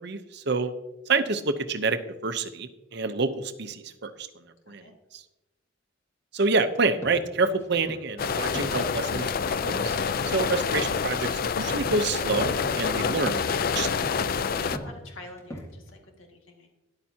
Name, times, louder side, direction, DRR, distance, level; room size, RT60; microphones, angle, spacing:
voice 1, 0.0-0.7 1.1-4.3 4.7-4.8 5.1-5.2 6.3-10.0 10.2-13.9, right 3 dB, 55° right, 10 dB, 0.8 m, -28 dB
sound 1, 6.8-8.0 8.4-9.4 11.4-12.0 12.3-15.9, equal, 15° left, 1.6 m, -41 dB
sound 2, 8.2-14.8, left 5 dB, 45° left, 0.4 m, -27 dB
voice 2, 14.5-16.8, left 2 dB, 85° left, 1 dB, 2.0 m, -46 dB
13.0 x 10.5 x 2.8 m, 1.0 s
head